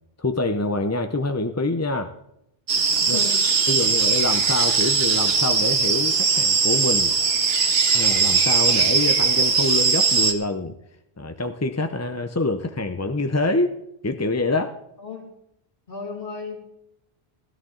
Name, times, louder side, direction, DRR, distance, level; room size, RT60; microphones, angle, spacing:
voice 1, 0.2-2.1 3.1-3.2 3.7-7.1 7.9-10.7 11.2-13.7 14.0-14.7, left 2 dB, 20° left, 6 dB, 0.5 m, -25 dB
sound 1, 2.7-10.3, right 5 dB, 70° right, 1.4 m, -20 dB
voice 2, 3.0-3.4 15.0-15.3 15.9-16.7, left 5 dB, 60° left, 2 dB, 2.4 m, -34 dB
16.0 x 13.0 x 3.8 m, 0.81 s
omnidirectional pair, 1.1 m